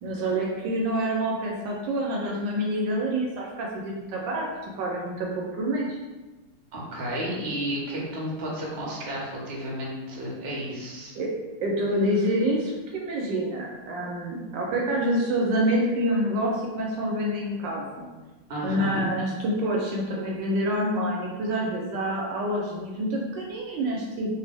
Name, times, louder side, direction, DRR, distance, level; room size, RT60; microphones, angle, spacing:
voice 1, 0.0-4.5 4.8-6.0 11.1-11.3 11.6-18.1 18.6-24.3, right 1 dB, 75° right, -1 dB, 1.1 m, -27 dB
voice 2, 6.7-11.1 18.5-19.0, equal, 60° right, -4 dB, 0.6 m, -32 dB
3.3 x 2.4 x 3.3 m, 1.2 s
omnidirectional pair, 2.2 m